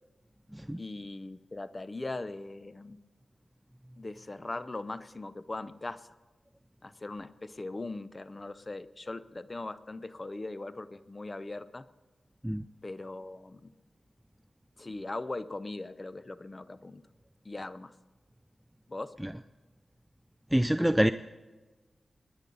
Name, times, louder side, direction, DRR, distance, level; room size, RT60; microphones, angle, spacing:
voice 1, 0.8-3.0 4.0-6.1 6.8-11.9 12.8-13.7 14.8-17.0 17.4-18.0 18.9-19.1, left 2 dB, 35° left, 14 dB, 0.7 m, -40 dB
voice 2, 20.5-21.1, equal, 5° right, 11 dB, 0.4 m, -25 dB
28.5 x 10.0 x 4.0 m, 1.3 s
cardioid pair, 55°, 0 cm